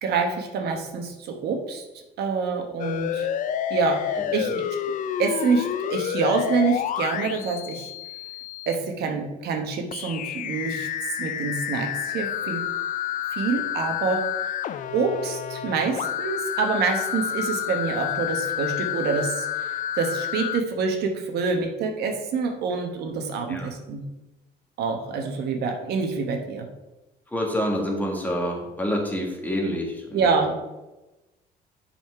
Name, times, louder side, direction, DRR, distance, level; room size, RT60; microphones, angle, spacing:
voice 1, 0.0-1.8 2.2-3.3 3.7-4.5 5.2-7.9 8.7-10.9 11.2-12.6 13.4-14.2 14.9-19.5 20.0-24.0 24.8-26.7 30.1-30.5, right 5 dB, 75° right, 4 dB, 1.1 m, -26 dB
sound 1, 2.8-8.8 9.9-20.6, left 10 dB, 50° left, 0.4 m, -29 dB
voice 2, 27.3-30.5, equal, 10° left, 0 dB, 1.6 m, -28 dB
7.4 x 4.3 x 4.6 m, 1.0 s
cardioid pair, 110°, 17 cm